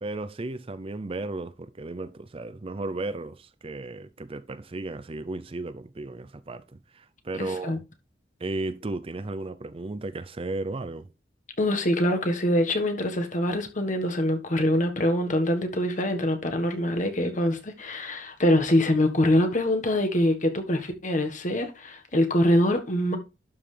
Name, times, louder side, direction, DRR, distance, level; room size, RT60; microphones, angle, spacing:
voice 1, 0.0-7.8 8.4-11.1, right 2 dB, 35° right, 0.5 m, -34 dB
voice 2, 7.4-7.8 11.6-23.2, left 1 dB, 45° left, 1.5 m, -24 dB
11.5 x 5.6 x 3.3 m
head